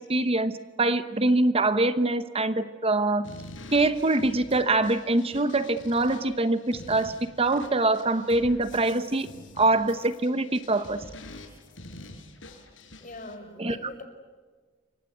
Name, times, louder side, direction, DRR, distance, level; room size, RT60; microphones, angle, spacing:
voice 1, 0.0-3.3 3.7-9.3 9.6-11.0 13.6-13.8, right 2 dB, 30° right, 12 dB, 1.0 m, -24 dB
sound 1, 3.2-13.3, left 2 dB, 75° left, 5.4 m, -46 dB
voice 2, 13.0-14.0, left 2 dB, 45° left, 6 dB, 5.4 m, -41 dB
29.0 x 25.0 x 8.1 m, 1.4 s
head